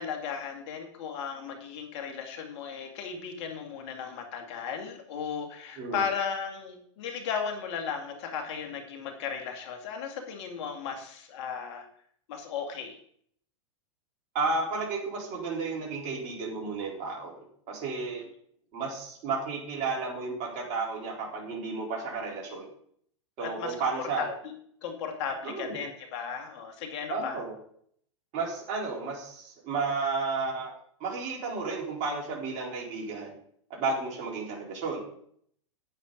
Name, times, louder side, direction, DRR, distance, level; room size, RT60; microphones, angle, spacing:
voice 1, 0.0-11.9 12.3-13.0 23.4-24.5 24.8-27.4, left 6 dB, 60° left, 4 dB, 2.2 m, -36 dB
voice 2, 14.3-18.2 18.7-22.7 23.4-24.3 25.4-25.8 27.1-27.5 28.3-30.7 31.0-33.3 33.7-35.0, right 4 dB, 45° right, -3 dB, 4.0 m, -32 dB
9.2 x 9.0 x 3.9 m, 0.64 s
hypercardioid pair, 115°, 17 cm